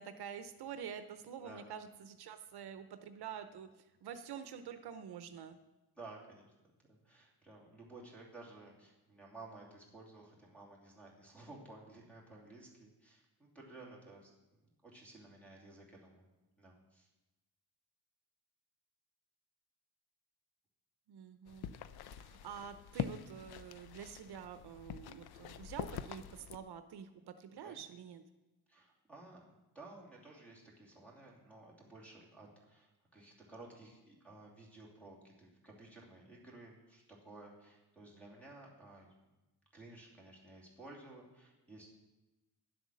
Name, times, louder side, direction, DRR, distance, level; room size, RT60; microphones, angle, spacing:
voice 1, 0.0-5.6 21.1-21.7 22.2-28.2, right 8 dB, 75° right, 10 dB, 0.7 m, -47 dB
voice 2, 6.0-6.4 6.9-14.3 14.8-16.3 16.6-17.1 27.6-27.8 28.7-29.4 29.7-39.1 39.7-41.9, right 2 dB, 5° left, -3 dB, 2.7 m, -55 dB
sound 1, 21.5-26.6, left 9 dB, 70° left, 0.5 m, -45 dB
10.5 x 8.0 x 6.3 m, 1.1 s
wide cardioid pair, 150°, 39 cm